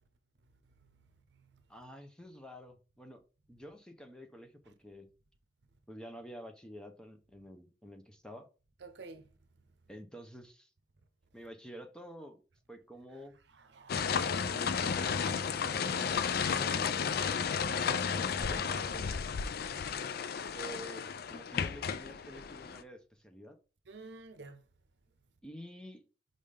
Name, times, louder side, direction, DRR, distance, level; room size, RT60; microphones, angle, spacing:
voice 1, 0.7-1.6 8.8-9.3 13.5-14.3 23.9-24.6, right 3 dB, 70° right, 0.7 m, -52 dB
voice 2, 1.7-3.2 3.5-5.1 5.9-8.5 9.9-10.7 11.3-12.4 12.7-13.3 14.4-19.3 20.5-23.6 25.4-26.0, equal, 5° left, 0.8 m, -49 dB
sound 1, 13.9-22.8, left 6 dB, 60° left, 0.4 m, -33 dB
5.4 x 3.7 x 5.0 m
head